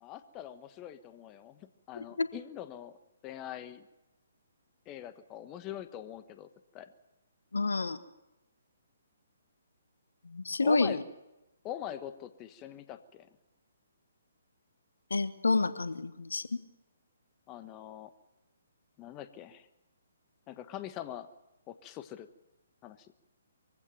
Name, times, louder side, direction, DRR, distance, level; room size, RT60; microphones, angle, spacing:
voice 1, 0.0-3.0 3.2-3.9 4.9-6.9 10.6-11.0 11.6-13.3 17.5-18.1 19.0-19.7 20.5-21.3 21.7-22.3 22.8-23.1, left 11 dB, 25° left, 11 dB, 1.2 m, -43 dB
voice 2, 7.5-8.0 10.2-11.0 15.1-16.6, left 3 dB, 80° left, 13 dB, 1.3 m, -29 dB
23.0 x 16.0 x 9.2 m, 0.98 s
figure-of-eight pair, 135°, 0 cm